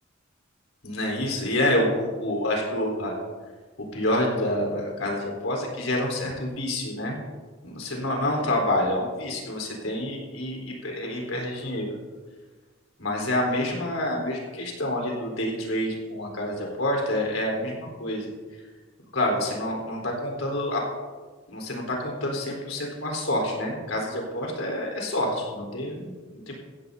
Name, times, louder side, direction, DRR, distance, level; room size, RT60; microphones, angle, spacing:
voice 1, 0.8-3.1 3.9-7.2 7.6-11.9 13.0-18.3 19.1-20.8 21.5-26.1, left 1 dB, 90° left, -1 dB, 4.0 m, -27 dB
15.5 x 15.0 x 2.8 m, 1.4 s
head